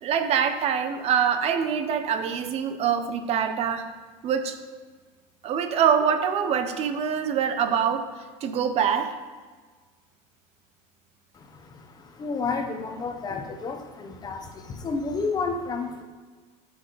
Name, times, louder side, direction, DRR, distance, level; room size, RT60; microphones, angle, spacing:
voice 1, 0.0-3.8 4.2-4.5 5.4-8.1 8.4-9.1, right 7 dB, 40° right, 8 dB, 1.0 m, -24 dB
voice 2, 11.3-16.0, left 4 dB, 25° left, 5 dB, 1.1 m, -31 dB
13.0 x 6.1 x 4.1 m, 1.5 s
supercardioid pair, 140°, 16 cm